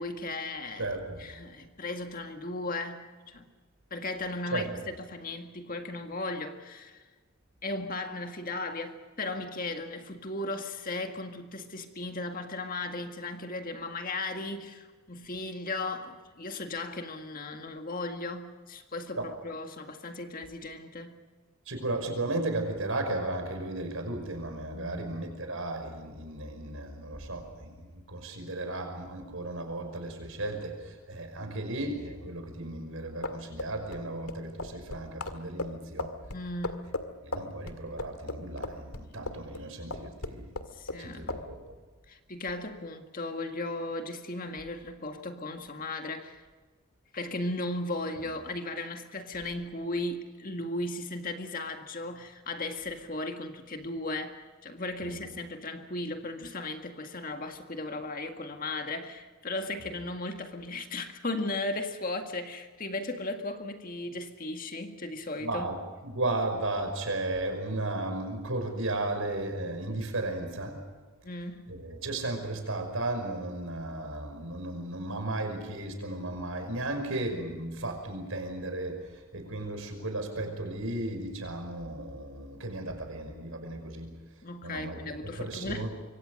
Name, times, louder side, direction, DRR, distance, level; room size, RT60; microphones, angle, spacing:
voice 1, 0.0-0.9 1.2-3.5 3.9-7.1 7.6-21.2 24.7-25.1 25.5-25.6 36.3-36.9 40.7-41.4 42.1-46.5 47.1-65.7 71.2-71.7 84.4-85.9, left 2 dB, 40° left, 1.9 m, -36 dB
voice 2, 0.8-1.2 4.5-4.7 19.2-19.3 21.7-36.1 37.2-40.5 41.0-41.6 55.0-55.2 65.4-65.8 66.0-70.8 71.7-84.2 84.6-85.9, right 2 dB, 65° right, 5.6 m, -35 dB
sound 1, 33.1-39.6 39.9-41.0 41.3-41.5, left 2 dB, 85° left, 2.0 m, -36 dB
26.5 x 24.0 x 6.5 m
head